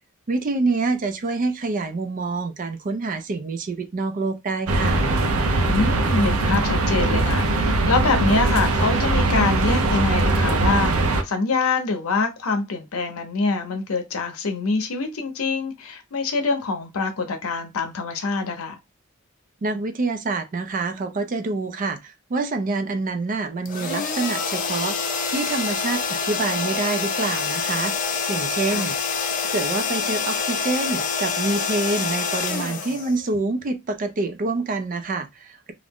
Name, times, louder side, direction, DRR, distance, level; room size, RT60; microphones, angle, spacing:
voice 1, 0.3-5.0 19.6-28.0 28.3-29.0 29.5-35.7, right 3 dB, 40° right, 0.4 m, -26 dB
sound 1, 4.7-11.2, right 2 dB, 85° right, 0.6 m, -21 dB
voice 2, 5.7-18.8 28.7-28.9, left 3 dB, 80° left, 0.7 m, -25 dB
sound 2, 23.7-33.6, left 5 dB, 40° left, 0.4 m, -26 dB
2.5 x 2.0 x 3.4 m
head